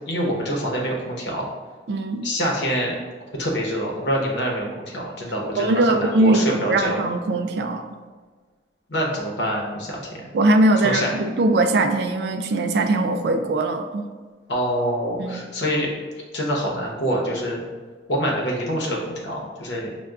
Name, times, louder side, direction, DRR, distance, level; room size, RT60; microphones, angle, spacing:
voice 1, 0.1-1.4 2.2-2.9 3.3-7.0 8.9-10.3 10.8-11.1 14.5-15.9 16.3-17.6 18.1-19.9, equal, 70° left, -2 dB, 0.8 m, -25 dB
voice 2, 1.9-2.2 5.6-7.8 10.3-14.1 15.2-15.4, right 2 dB, 60° right, 6 dB, 0.3 m, -20 dB
6.4 x 2.2 x 2.3 m, 1.4 s
head